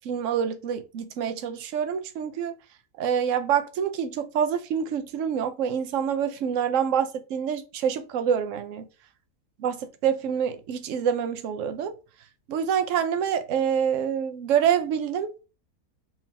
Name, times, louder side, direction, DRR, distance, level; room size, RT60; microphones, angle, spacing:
voice 1, 0.0-2.5 3.0-8.9 9.6-11.9 12.5-15.4, right 8 dB, 60° right, 1.0 m, -26 dB
4.6 x 3.5 x 2.8 m
omnidirectional pair, 1.7 m